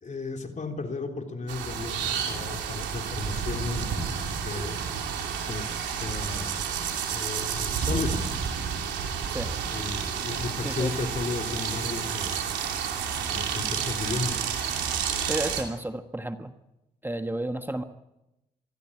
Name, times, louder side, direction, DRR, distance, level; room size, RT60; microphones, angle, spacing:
voice 1, 0.0-6.6 7.1-8.3 9.7-12.4 13.3-14.4, left 3 dB, 45° left, 4 dB, 3.5 m, -34 dB
sound 1, 1.5-15.6, right 7 dB, 85° right, 2.8 m, -30 dB
voice 2, 15.3-16.5 17.0-17.8, right 1 dB, 10° right, 7 dB, 1.5 m, -32 dB
23.5 x 15.0 x 8.6 m, 0.92 s
supercardioid pair, 50°, 18 cm